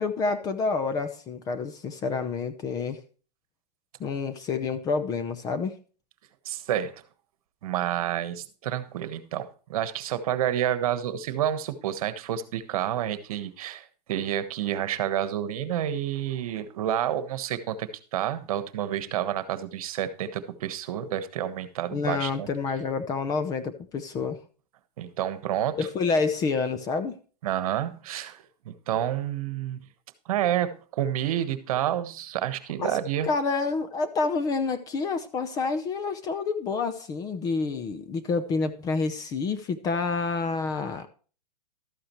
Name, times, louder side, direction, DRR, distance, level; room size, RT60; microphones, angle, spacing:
voice 1, 0.0-3.0 4.0-5.8 21.9-24.4 25.8-27.2 32.8-33.0 33.2-41.1, left 4 dB, 15° left, 10 dB, 0.6 m, -28 dB
voice 2, 6.4-6.9 7.6-22.5 25.0-25.8 27.4-29.8 30.3-33.3, right 11 dB, 55° right, 12 dB, 1.3 m, -29 dB
12.5 x 8.7 x 3.1 m, 0.38 s
hypercardioid pair, 150°, 21 cm